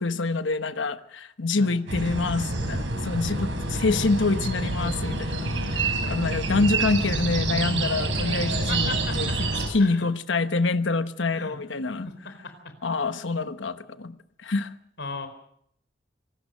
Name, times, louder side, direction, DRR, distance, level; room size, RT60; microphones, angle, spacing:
voice 1, 0.0-12.1 12.8-14.2 14.4-14.7, left 3 dB, 90° left, 11 dB, 1.1 m, -26 dB
sound 1, 1.9-9.7, right 2 dB, 80° right, 5.2 m, -27 dB
voice 2, 6.0-6.4 8.5-9.4 9.8-10.0 11.3-11.6 12.0-12.7 15.0-15.3, left 3 dB, 70° left, 9 dB, 4.2 m, -37 dB
26.0 x 19.0 x 6.5 m, 0.69 s
head